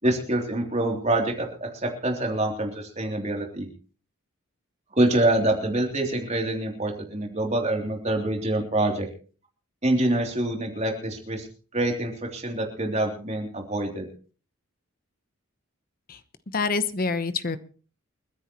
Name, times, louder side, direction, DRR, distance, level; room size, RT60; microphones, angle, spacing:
voice 1, 0.0-3.7 5.0-9.1 9.8-11.5 11.7-14.1, right 1 dB, 30° right, 2 dB, 3.2 m, -26 dB
voice 2, 16.5-17.6, left 4 dB, 45° left, 12 dB, 1.0 m, -26 dB
29.0 x 10.0 x 3.1 m, 0.39 s
head